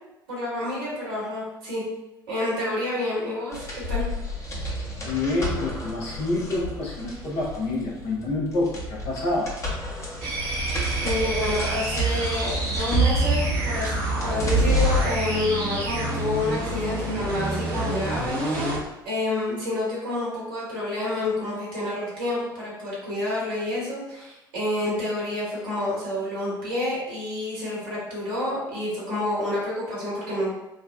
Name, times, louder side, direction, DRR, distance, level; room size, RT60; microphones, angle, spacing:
voice 1, 0.3-1.8 2.3-4.0 11.0-13.9 14.2-18.7 19.0-30.5, left 1 dB, 70° right, -6 dB, 1.4 m, -28 dB
sound 1, 3.5-15.0, right 1 dB, 25° left, 1.0 m, -28 dB
voice 2, 5.0-9.5, left 2 dB, 55° left, -4 dB, 1.0 m, -27 dB
sound 2, 10.2-18.8, right 1 dB, 55° right, 1.1 m, -28 dB
3.8 x 2.3 x 2.4 m, 0.93 s
figure-of-eight pair, 60°, 12 cm